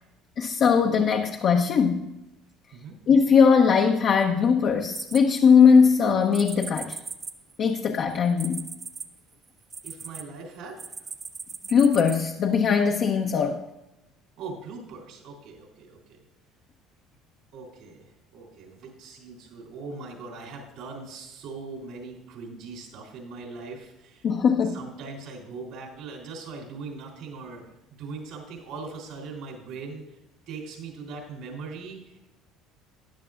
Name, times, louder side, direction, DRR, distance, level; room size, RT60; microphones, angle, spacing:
voice 1, 0.4-2.1 3.1-7.0 7.6-8.6 11.7-13.6 24.2-24.8, left 6 dB, 55° left, 3 dB, 0.8 m, -20 dB
sound 1, 4.9-5.8 6.3-10.2 10.8-12.2, right 5 dB, 35° right, 0.8 m, -38 dB
voice 2, 9.8-11.1 14.4-16.2 17.5-24.3 24.6-27.7 28.0-30.2 30.5-32.3, right 4 dB, 70° right, -1 dB, 3.2 m, -40 dB
14.0 x 9.8 x 2.5 m, 0.96 s
hypercardioid pair, 75°, 0 cm